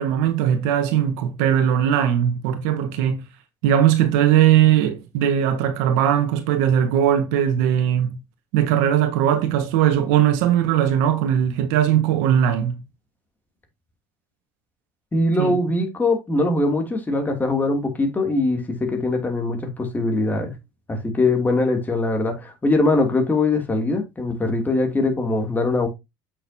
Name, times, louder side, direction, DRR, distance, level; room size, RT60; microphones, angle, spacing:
voice 1, 0.0-3.2 3.6-8.2 8.5-12.8 15.4-15.5, right 10 dB, 80° right, 1.5 m, -19 dB
voice 2, 15.1-20.5 20.9-25.9, left 2 dB, 20° left, 2.7 m, -22 dB
8.1 x 6.5 x 2.8 m
supercardioid pair, 105°, 9 cm